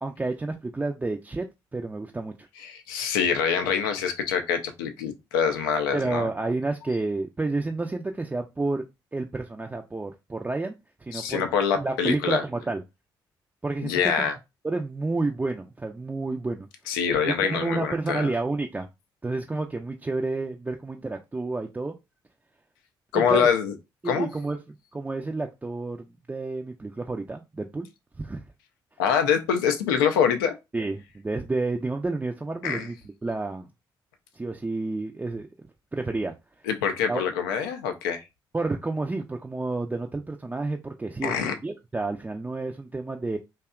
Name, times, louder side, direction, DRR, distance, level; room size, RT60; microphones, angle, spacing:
voice 1, 0.0-2.5 5.9-8.8 9.1-10.8 11.0-11.4 11.8-12.8 13.6-14.3 14.6-16.7 17.3-18.9 19.2-21.9 23.1-23.5 24.0-27.9 28.2-28.4 30.7-33.0 33.2-33.7 34.3-35.5 35.9-36.3 37.1-37.2 38.5-43.4, right 3 dB, 15° right, 0.3 m, -30 dB
voice 2, 2.6-6.3 11.1-12.4 13.8-14.3 16.9-18.3 23.1-23.7 24.0-24.3 29.0-30.5 32.6-32.9 36.7-38.2 41.2-41.5, left 7 dB, 80° left, 0.4 m, -25 dB
2.7 x 2.2 x 2.2 m
hypercardioid pair, 45°, 11 cm